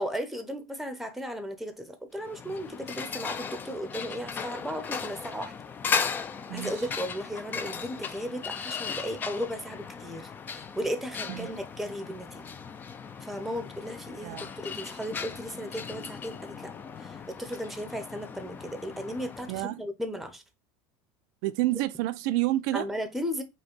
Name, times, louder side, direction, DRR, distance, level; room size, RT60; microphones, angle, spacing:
voice 1, 0.0-5.5 6.5-12.4 13.2-16.7 17.0-20.4 22.7-23.4, equal, ahead, 0.7 m, -35 dB
sound 1, 2.2-19.6, left 6 dB, 20° left, 0.3 m, -37 dB
voice 2, 6.5-6.9 11.3-11.5 14.2-14.5 19.5-19.8 21.4-22.9, right 16 dB, 65° right, 0.4 m, -29 dB
5.1 x 2.2 x 4.3 m
supercardioid pair, 145°, 10 cm